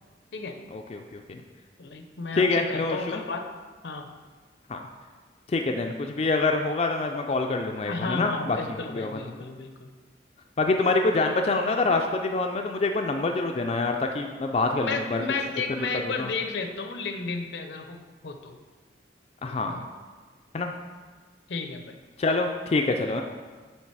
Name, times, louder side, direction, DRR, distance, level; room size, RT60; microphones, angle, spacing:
voice 1, 0.7-1.4 2.3-3.2 4.7-4.8 5.5-9.2 10.6-15.2 16.0-16.3 19.4-19.9 20.5-20.7 22.2-23.2, left 3 dB, 35° left, 3 dB, 0.3 m, -26 dB
voice 2, 1.8-3.5 3.8-4.1 7.8-9.9 14.8-18.0 18.2-18.6 21.5-22.0, left 4 dB, 75° left, 5 dB, 0.7 m, -33 dB
8.6 x 3.3 x 4.6 m, 1.4 s
head